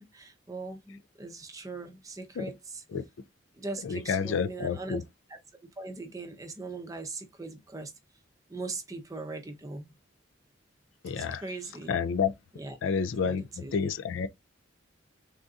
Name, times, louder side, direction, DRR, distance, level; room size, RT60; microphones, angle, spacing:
voice 1, 0.0-2.8 3.6-5.0 5.8-7.9 8.5-9.9 11.2-11.9 12.6-12.8 13.2-13.4 13.6-13.7, right 3 dB, 15° right, 0.5 m, -40 dB
voice 2, 3.8-5.0 11.0-11.4 11.9-12.3 12.8-14.3, left 6 dB, 80° left, 0.4 m, -29 dB
3.6 x 2.6 x 2.3 m
head